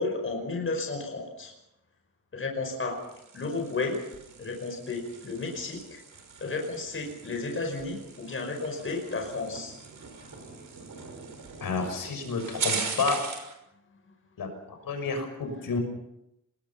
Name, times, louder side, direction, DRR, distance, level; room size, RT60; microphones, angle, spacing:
voice 1, 0.0-1.5 2.3-3.0 3.3-4.0 4.4-6.0 6.4-9.7 10.2-10.6 11.1-11.2 11.6-11.7, left 3 dB, 35° left, 3 dB, 5.1 m, -33 dB
sound 1, 2.8-13.5, right 5 dB, 60° right, 6.2 m, -40 dB
voice 2, 11.6-13.2 14.4-14.5 14.8-15.8, left 4 dB, 75° left, 4 dB, 6.4 m, -30 dB
27.5 x 21.0 x 5.8 m, 0.85 s
wide cardioid pair, 155°, 35 cm